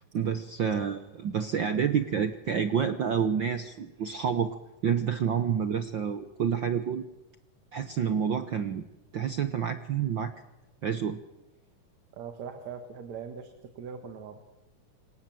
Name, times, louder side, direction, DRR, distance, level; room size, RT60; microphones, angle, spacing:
voice 1, 0.1-4.5 4.8-7.0 7.7-8.8 9.1-10.3 10.8-11.2, right 7 dB, 85° right, 10 dB, 1.0 m, -28 dB
voice 2, 12.2-13.5 13.8-14.4, right 6 dB, 60° right, 7 dB, 2.9 m, -40 dB
28.0 x 26.5 x 7.7 m, 0.98 s
omnidirectional pair, 3.8 m